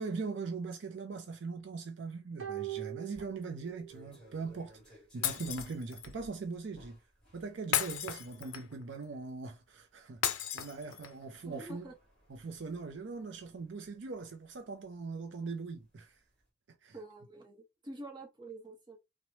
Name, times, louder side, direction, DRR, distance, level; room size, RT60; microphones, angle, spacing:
voice 1, 0.0-7.0 7.3-11.9 12.3-16.2 16.8-17.0, right 4 dB, 60° right, 0.4 m, -41 dB
sound 1, 2.4-4.0 4.3-4.4, right 13 dB, 85° right, 0.8 m, -41 dB
sound 2, 3.1-15.7 16.1-16.4, equal, 5° left, 1.5 m, -60 dB
Shatter, 5.2-6.1 7.7-8.8 10.2-11.2, left 9 dB, 75° left, 0.4 m, -34 dB
voice 2, 11.4-11.9 16.9-19.0, right 1 dB, 20° right, 0.8 m, -47 dB
3.0 x 2.0 x 2.7 m
head